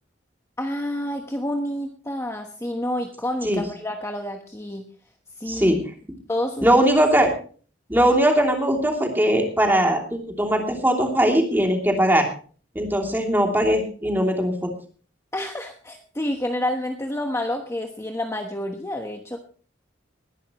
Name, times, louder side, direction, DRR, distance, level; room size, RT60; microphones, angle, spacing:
voice 1, 0.6-4.8 5.4-5.8 6.3-6.8 15.3-19.4, left 1 dB, 15° left, 3 dB, 1.2 m, -29 dB
voice 2, 5.5-5.8 6.6-7.3 7.9-12.3 12.7-14.7, right 1 dB, 10° right, 2 dB, 2.9 m, -20 dB
20.5 x 11.0 x 3.1 m, 0.41 s
head